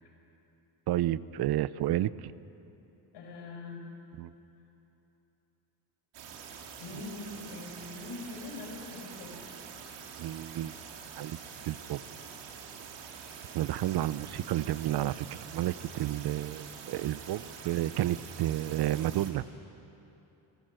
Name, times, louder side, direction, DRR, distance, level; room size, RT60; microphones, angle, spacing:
voice 1, 0.9-2.1 4.2-4.3 10.2-10.7 11.2-11.4 11.7-12.0 13.5-19.4, right 13 dB, 65° right, 18 dB, 0.7 m, -31 dB
voice 2, 3.1-3.9 6.8-9.4 16.2-16.5, left 2 dB, 80° left, 0 dB, 6.1 m, -43 dB
sound 1, 6.1-19.3, right 7 dB, 90° right, 2.9 m, -46 dB
26.0 x 18.0 x 7.7 m, 2.9 s
cardioid pair, 115°, 42 cm